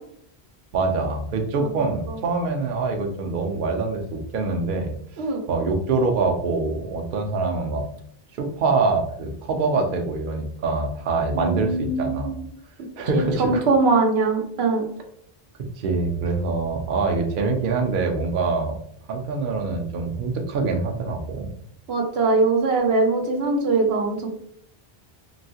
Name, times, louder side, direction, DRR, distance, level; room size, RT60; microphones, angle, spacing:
voice 1, 0.7-4.9 5.5-7.8 8.4-12.3 13.0-13.6 15.8-18.8 19.1-21.5, right 3 dB, 60° right, 3 dB, 0.7 m, -24 dB
voice 2, 1.6-2.2 5.2-5.4 11.3-12.4 13.1-14.9 21.9-24.3, right 3 dB, 85° right, 4 dB, 0.9 m, -22 dB
3.1 x 2.7 x 2.7 m, 0.69 s
omnidirectional pair, 1.0 m